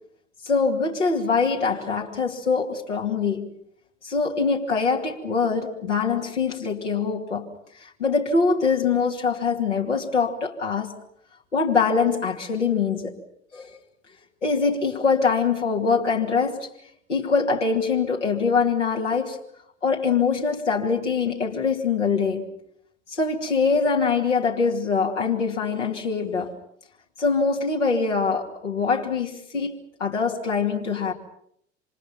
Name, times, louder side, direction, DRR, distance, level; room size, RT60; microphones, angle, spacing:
voice 1, 0.4-3.5 4.0-7.5 8.0-10.9 11.5-13.2 13.5-13.7 14.4-16.7 17.1-19.4 19.8-22.5 23.1-26.5 27.2-31.1, left 5 dB, 85° left, 2.7 m, -23 dB
28.0 x 26.0 x 5.9 m
figure-of-eight pair, 65°, 35 cm